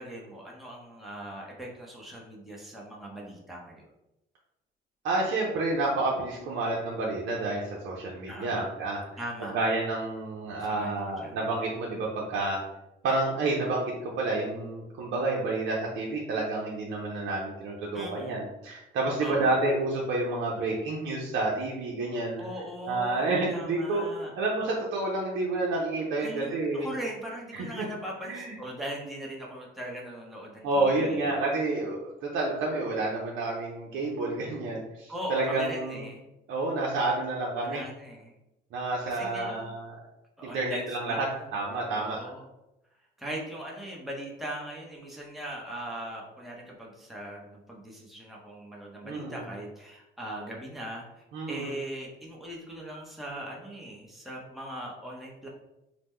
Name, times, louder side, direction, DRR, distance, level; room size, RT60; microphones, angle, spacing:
voice 1, 0.0-3.9 8.3-8.7 9.2-9.6 10.6-11.4 17.9-18.4 19.2-19.6 22.4-24.3 26.2-31.4 35.1-36.2 37.6-38.3 39.1-39.7 40.4-41.5 41.9-42.4 43.2-55.5, right 1 dB, ahead, -3 dB, 0.8 m, -40 dB
voice 2, 5.0-12.6 13.0-22.4 22.9-24.1 24.4-26.9 27.5-27.9 28.2-28.5 30.6-36.0 36.5-37.8 38.7-39.9 40.4-41.3 41.5-42.2 49.0-49.4 51.3-51.7, right 2 dB, 75° right, -3 dB, 0.6 m, -29 dB
2.9 x 2.1 x 3.5 m, 0.91 s
cardioid pair, 90°, 20 cm